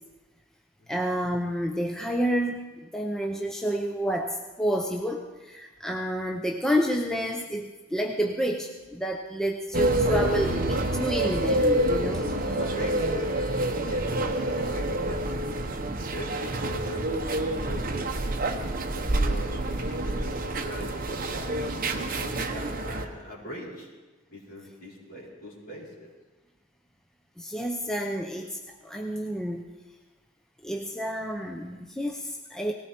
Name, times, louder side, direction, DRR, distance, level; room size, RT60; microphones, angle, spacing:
voice 1, 0.9-12.4 27.4-29.6 30.6-32.7, equal, 5° left, 2 dB, 0.7 m, -29 dB
sound 1, 9.7-23.0, right 1 dB, 45° right, 1.1 m, -27 dB
voice 2, 10.3-10.8 12.4-15.7 16.1-18.2 18.8-23.9 24.3-26.1, equal, 50° left, -5 dB, 4.9 m, -41 dB
19.5 x 16.5 x 4.4 m, 1.2 s
head